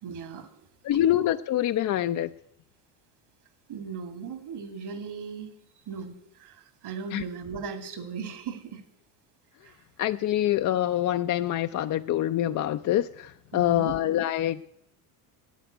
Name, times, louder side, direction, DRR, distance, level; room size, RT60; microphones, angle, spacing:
voice 1, 0.0-0.7 3.7-5.5 5.9-8.8 9.6-9.8 13.5-13.9, right 6 dB, 55° right, 9 dB, 2.4 m, -38 dB
voice 2, 0.8-2.3 7.1-7.2 10.0-14.6, left 12 dB, 40° left, 9 dB, 0.6 m, -25 dB
10.5 x 8.5 x 9.2 m, 0.75 s
hypercardioid pair, 70°, 47 cm